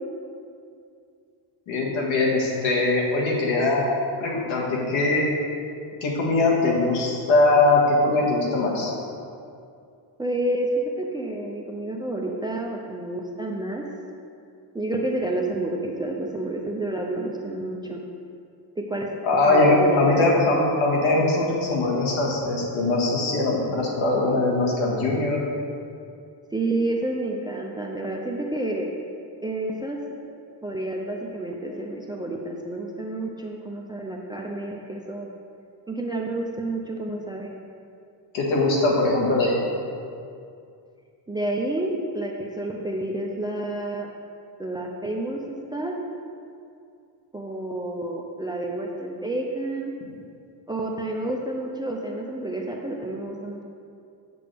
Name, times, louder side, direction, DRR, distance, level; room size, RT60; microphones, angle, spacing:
voice 1, 1.7-3.8 4.2-5.3 6.0-8.9 19.2-25.4 38.3-39.6, left 2 dB, 80° left, -2 dB, 1.7 m, -21 dB
voice 2, 10.2-10.7 11.0-13.8 14.7-18.0 18.8-19.1 19.5-20.2 26.5-28.9 29.4-30.0 30.6-35.3 35.9-37.5 41.3-44.1 44.6-46.0 47.3-49.9 50.7-53.6, right 1 dB, 10° right, 0 dB, 0.3 m, -29 dB
7.4 x 6.9 x 3.4 m, 2.4 s
cardioid pair, 135°, 47 cm